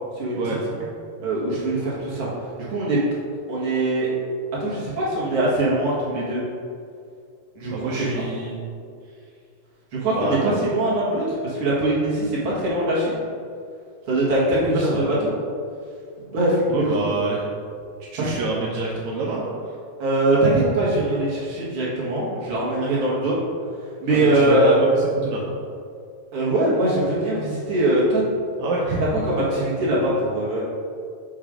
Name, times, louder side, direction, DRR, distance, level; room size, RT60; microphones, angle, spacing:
voice 1, 1.2-2.3 2.6-3.0 3.5-4.1 4.6-6.4 7.6-8.1 9.9-13.2 14.1-14.9 15.2-15.3 16.2-17.1 18.2-18.4 20.0-23.4 24.0-24.7 26.3-28.2 29.0-30.6, right 1 dB, 45° right, -7 dB, 2.0 m, -22 dB
voice 2, 7.7-8.6 10.1-10.5 14.7-15.1 16.7-17.4 18.1-19.7 24.1-24.8 25.2-25.4 28.6-29.0, right 3 dB, 85° right, -4 dB, 1.6 m, -26 dB
8.9 x 3.2 x 5.0 m, 2.3 s
omnidirectional pair, 4.5 m